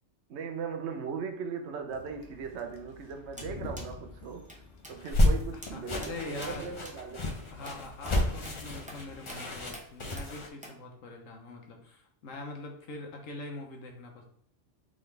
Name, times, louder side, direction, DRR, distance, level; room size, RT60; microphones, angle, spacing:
voice 1, 0.3-4.5 4.9-7.2, right 6 dB, 65° right, 1.0 m, -38 dB
sound 1, 1.9-9.2, left 3 dB, 70° left, 1.1 m, -49 dB
sound 2, 3.4-3.5 3.8-3.9 4.5-4.6 4.8-5.0 5.2-5.3 5.6-5.7 6.0-6.1 6.4-6.5 6.8-7.0 7.7-7.8 8.1-8.2 8.4-8.6 8.9-9.0 9.3-9.4 9.7-9.9 10.2-10.3 10.6-10.8, right 1 dB, 10° right, 0.5 m, -46 dB
sound 3, 4.9-10.5, left 1 dB, 30° left, 0.7 m, -30 dB
voice 2, 5.5-6.7 7.5-14.2, left 2 dB, 85° left, 1.3 m, -43 dB
4.1 x 3.8 x 3.3 m
omnidirectional pair, 1.3 m